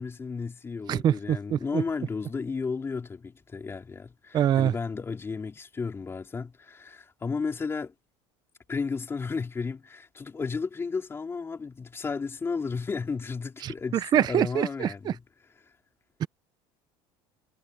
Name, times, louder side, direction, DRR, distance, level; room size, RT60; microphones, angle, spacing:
voice 1, 0.0-7.9 8.7-15.2, left 5 dB, 20° left, 3.2 m, -33 dB
voice 2, 0.9-1.8 4.3-4.7 13.6-15.1 16.2-16.3, right 10 dB, 35° right, 0.5 m, -25 dB
cardioid pair, 125°, 12 cm